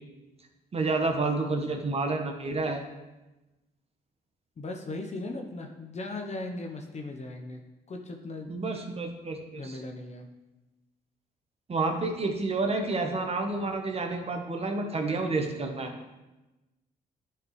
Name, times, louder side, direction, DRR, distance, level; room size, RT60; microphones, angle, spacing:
voice 1, 0.7-2.8 8.5-9.8 11.7-15.9, right 3 dB, 40° right, 4 dB, 1.1 m, -29 dB
voice 2, 4.6-7.6 7.9-8.5 9.5-10.3, left 2 dB, 40° left, 3 dB, 0.9 m, -38 dB
10.5 x 4.9 x 3.2 m, 1.1 s
cardioid pair, 70°, 17 cm